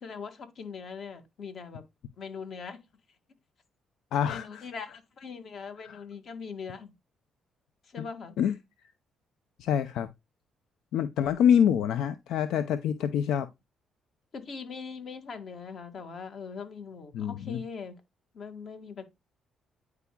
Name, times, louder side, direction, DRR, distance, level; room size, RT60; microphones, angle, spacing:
voice 1, 0.0-1.8 2.2-2.8 4.3-6.9 7.9-8.3 11.3-11.7 14.3-18.0 18.3-19.0, left 5 dB, 55° left, 1.9 m, -41 dB
voice 2, 4.1-4.6 5.8-6.0 8.0-8.1 8.4-8.6 9.6-10.1 10.9-13.5 17.1-17.6, left 8 dB, 85° left, 0.5 m, -26 dB
9.8 x 4.7 x 2.2 m
cardioid pair, 90°, 0 cm